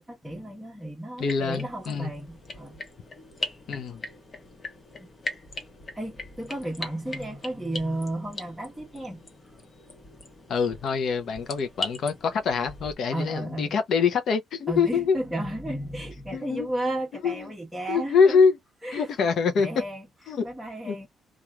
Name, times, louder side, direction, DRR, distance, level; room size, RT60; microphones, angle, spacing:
voice 1, 0.0-2.8 5.0-5.1 5.9-9.2 13.1-13.7 14.7-18.4 18.8-20.1 20.4-21.1, right 1 dB, 5° right, 1.0 m, -33 dB
voice 2, 1.2-2.1 3.7-4.0 10.5-15.2 16.3-16.7 17.2-17.5 17.9-18.6 18.9-19.7 20.3-20.4 20.8-21.0, left 5 dB, 65° left, 0.6 m, -24 dB
sound 1, 1.2-12.9, left 2 dB, 35° left, 1.1 m, -40 dB
2.9 x 2.3 x 2.3 m
cardioid pair, 90°, 0 cm